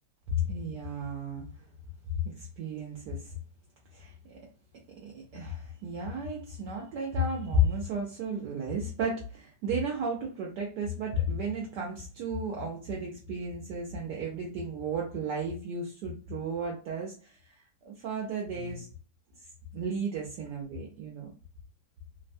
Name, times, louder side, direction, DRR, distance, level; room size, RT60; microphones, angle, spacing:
voice 1, 0.3-1.7 2.2-3.3 3.9-4.4 5.0-17.5 17.8-18.9 19.7-21.3, equal, 70° right, -1 dB, 1.1 m, -33 dB
3.3 x 2.1 x 2.5 m, 0.38 s
omnidirectional pair, 2.0 m